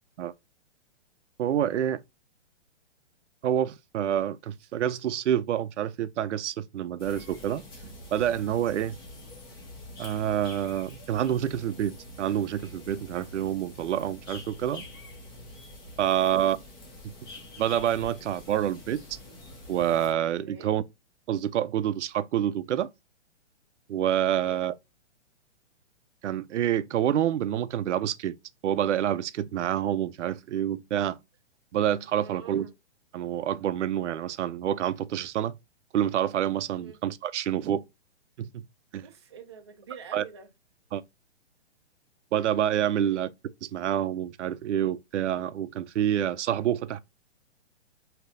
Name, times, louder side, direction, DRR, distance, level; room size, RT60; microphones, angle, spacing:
voice 1, 1.4-2.0 3.4-7.6 8.1-9.0 10.0-14.9 16.0-16.6 17.6-19.2 19.7-20.8 21.3-22.9 23.9-24.7 26.2-28.3 28.6-31.2 31.7-32.7 33.1-35.5 35.9-37.8 38.4-38.6 38.9-39.1 40.1-40.2 40.9-41.0 42.3-43.3 43.7-47.0, right 10 dB, 85° right, 0.5 m, -27 dB
sound 1, 7.0-20.1, left 1 dB, 20° left, 0.5 m, -46 dB
voice 2, 16.2-16.6 20.5-20.7 24.3-24.6 32.2-32.7 36.8-37.0 39.0-40.5 42.9-43.3, right 6 dB, 25° right, 0.3 m, -46 dB
3.3 x 2.8 x 2.5 m
hypercardioid pair, 160°, 35 cm